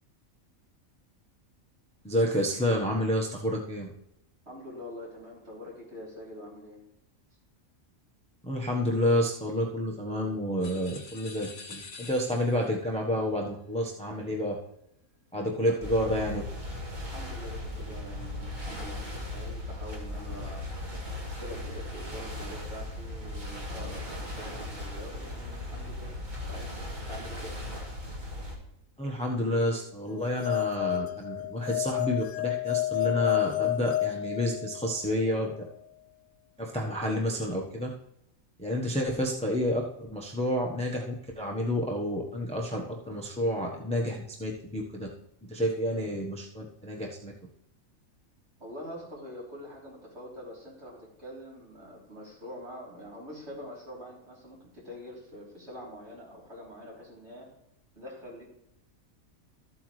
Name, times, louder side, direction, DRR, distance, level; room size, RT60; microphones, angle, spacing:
voice 1, 2.0-3.9 8.4-14.6 15.3-16.4 29.0-35.5 36.6-37.9 38.6-45.1 45.5-47.3, equal, 5° left, 0 dB, 1.0 m, -29 dB
voice 2, 4.5-6.8 15.6-16.1 17.1-26.1 26.4-26.7 27.1-27.5 39.0-39.2 48.6-57.5 58.0-58.5, left 1 dB, 50° right, -5 dB, 3.9 m, -45 dB
sound 1, 10.6-12.8, left 4 dB, 40° left, 0.9 m, -46 dB
sound 2, 15.8-28.6, left 1 dB, 35° right, 2.0 m, -38 dB
sound 3, 30.2-35.0, left 16 dB, 75° left, 1.0 m, -30 dB
13.5 x 8.1 x 3.2 m, 0.80 s
omnidirectional pair, 1.5 m